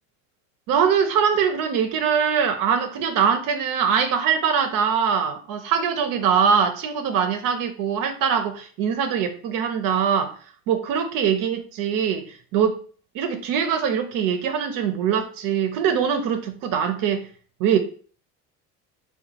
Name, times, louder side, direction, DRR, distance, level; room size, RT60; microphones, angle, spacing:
voice 1, 0.7-10.3 10.7-12.8 13.1-17.3 17.6-17.8, right 7 dB, 60° right, 7 dB, 0.6 m, -22 dB
3.9 x 2.3 x 4.5 m, 0.43 s
cardioid pair, 150°, 36 cm